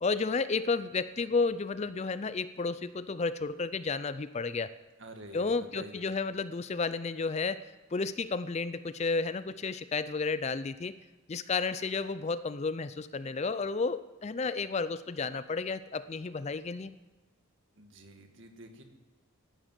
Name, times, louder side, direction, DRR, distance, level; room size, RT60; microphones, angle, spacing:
voice 1, 0.0-4.7 5.3-7.6 7.9-11.0 11.3-16.9, left 4 dB, 30° left, 15 dB, 0.4 m, -32 dB
voice 2, 5.0-6.1 17.8-18.8, right 2 dB, 55° right, 5 dB, 2.1 m, -48 dB
15.5 x 11.5 x 7.5 m, 1.3 s
head